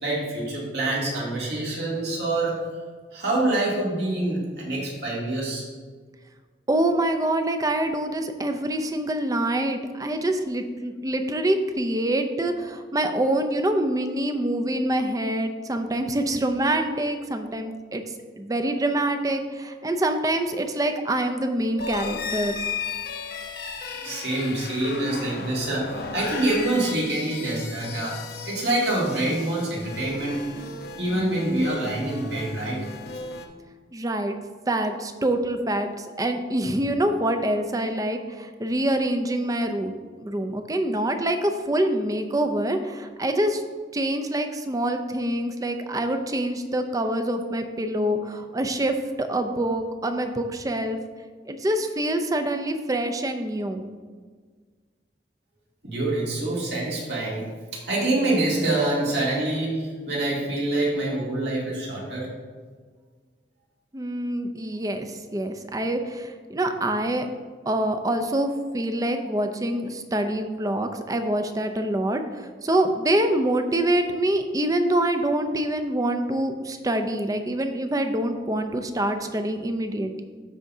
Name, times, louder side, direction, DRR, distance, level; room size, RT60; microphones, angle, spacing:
voice 1, 0.0-2.5 3.1-5.7 24.0-28.1 28.5-30.3 31.0-32.8 55.8-57.5 57.7-62.3, right 2 dB, 65° right, -5 dB, 2.3 m, -26 dB
voice 2, 6.7-18.0 18.4-22.6 33.9-34.4 34.7-39.9 40.2-43.6 43.9-51.0 51.4-53.9 63.9-67.3 67.7-80.2, right 1 dB, 20° right, 7 dB, 0.5 m, -25 dB
sound 1, 21.8-33.5, left 5 dB, 60° left, 0.8 m, -35 dB
13.0 x 4.8 x 2.7 m, 1.5 s
head